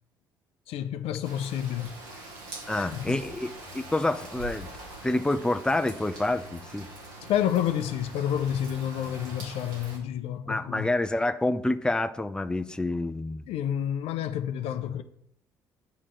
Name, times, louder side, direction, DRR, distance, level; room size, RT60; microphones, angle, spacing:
voice 1, 0.7-2.0 2.7-3.2 7.2-10.9 13.5-15.0, left 10 dB, 65° left, 0.6 m, -29 dB
Rain, 1.2-10.0, right 1 dB, 75° right, 2.6 m, -43 dB
voice 2, 2.7-4.7 5.0-6.9 10.5-13.4, left 2 dB, 5° left, 0.6 m, -28 dB
9.0 x 3.6 x 6.8 m
hypercardioid pair, 55°, 11 cm